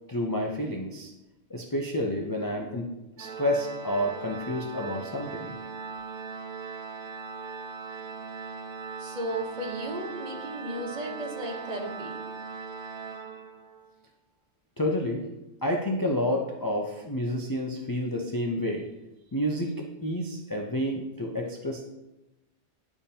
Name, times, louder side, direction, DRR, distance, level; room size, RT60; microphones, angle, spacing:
voice 1, 0.1-1.1 1.5-2.9 3.2-5.5 14.8-15.2 15.6-18.9 19.3-21.9, left 1 dB, 35° left, 0 dB, 0.3 m, -29 dB
Organ, 3.2-13.9, right 5 dB, 80° right, 0.9 m, -39 dB
voice 2, 9.0-12.2, right 1 dB, 35° right, 1 dB, 0.9 m, -35 dB
10.0 x 3.5 x 2.8 m, 0.97 s
omnidirectional pair, 1.3 m